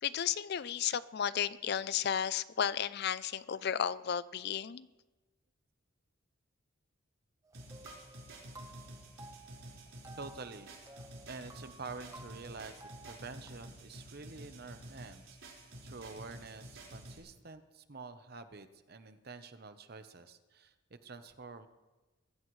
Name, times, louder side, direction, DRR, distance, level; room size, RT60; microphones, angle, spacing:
voice 1, 0.0-4.9, left 8 dB, 50° left, 17 dB, 0.4 m, -33 dB
sound 1, 7.4-13.5, right 2 dB, 15° right, 1.0 m, -55 dB
sound 2, 7.5-17.2, right 1 dB, 65° right, 4.7 m, -50 dB
voice 2, 10.1-10.7 11.3-15.4 15.8-21.7, right 4 dB, 50° right, 10 dB, 0.9 m, -48 dB
23.0 x 15.5 x 3.2 m, 1.2 s
head